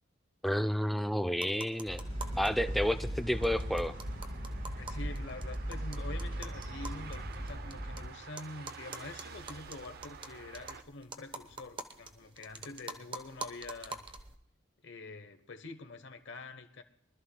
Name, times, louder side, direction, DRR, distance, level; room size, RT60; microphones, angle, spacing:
voice 1, 0.4-2.0 2.4-3.9, equal, ahead, 10 dB, 0.4 m, -30 dB
sound 1, 1.3-2.5 2.8-2.9 3.1-3.2 3.4-8.0 8.4-14.4, right 3 dB, 25° right, 0.9 m, -46 dB
sound 2, 1.9-8.1, equal, 75° right, 3.0 m, -38 dB
sound 3, 3.3-10.8, right 5 dB, 50° right, 0.6 m, -50 dB
voice 2, 4.8-14.0 14.8-16.8, left 2 dB, 60° left, 8 dB, 1.0 m, -46 dB
24.0 x 13.0 x 2.2 m, 0.70 s
head